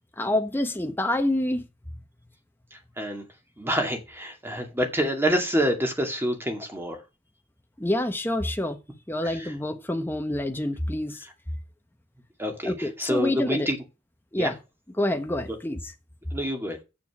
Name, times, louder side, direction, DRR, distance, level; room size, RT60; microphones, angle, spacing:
voice 1, 0.2-1.6 7.8-8.8 9.1-11.2 12.6-13.7 14.3-14.6 15.0-15.8, left 1 dB, 10° left, 1.2 m, -27 dB
voice 2, 3.6-7.0 9.2-9.5 12.4-12.7 13.0-13.8 14.4-14.5 16.3-16.8, equal, 10° right, 2.1 m, -27 dB
7.9 x 6.9 x 6.2 m
head